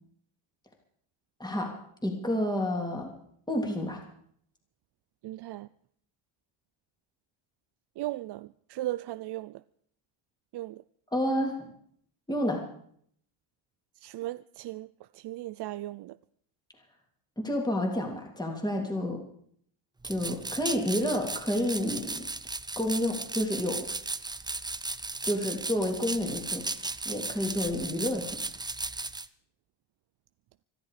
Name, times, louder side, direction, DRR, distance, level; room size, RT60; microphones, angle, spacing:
voice 1, 2.0-3.1 3.5-4.0 11.1-11.7 12.3-12.6 17.4-19.2 20.0-22.1 22.8-23.8 25.2-28.4, left 1 dB, 10° left, 3.2 m, -30 dB
voice 2, 5.2-5.7 8.0-9.6 10.5-10.8 14.0-14.9 15.1-16.2, right 16 dB, 55° right, 0.5 m, -37 dB
sound 1, 20.0-29.3, right 3 dB, 10° right, 0.6 m, -36 dB
25.0 x 11.0 x 5.0 m
cardioid pair, 100°, 50 cm